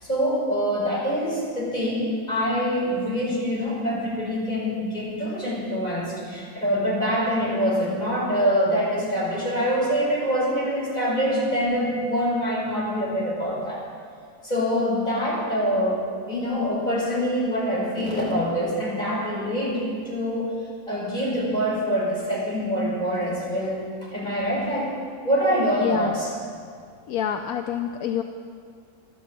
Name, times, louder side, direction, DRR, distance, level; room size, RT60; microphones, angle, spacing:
voice 1, 0.0-13.8 14.4-16.0 16.3-20.5 20.9-24.9 25.2-26.3, equal, 30° left, -6 dB, 5.4 m, -25 dB
voice 2, 25.8-26.2 27.1-28.2, left 9 dB, 80° left, 6 dB, 1.1 m, -27 dB
13.5 x 12.5 x 7.7 m, 2.1 s
omnidirectional pair, 1.6 m